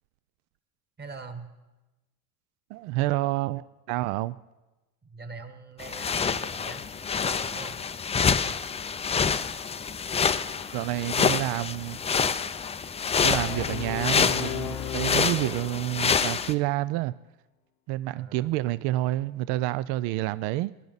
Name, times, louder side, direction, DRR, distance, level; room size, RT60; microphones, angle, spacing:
voice 1, 1.0-1.5 5.0-6.8 7.4-7.8 13.5-13.8 18.1-18.5, right 4 dB, 25° right, 8 dB, 1.4 m, -43 dB
voice 2, 2.7-4.4 10.7-12.0 13.2-17.1 17.9-20.7, right 17 dB, 60° right, 17 dB, 0.5 m, -28 dB
sound 1, 5.8-16.5, left 6 dB, 15° left, 0.4 m, -27 dB
Brass instrument, 13.2-16.3, left 10 dB, 65° left, 1.0 m, -35 dB
19.0 x 10.5 x 4.0 m, 1.1 s
supercardioid pair, 95°, 43 cm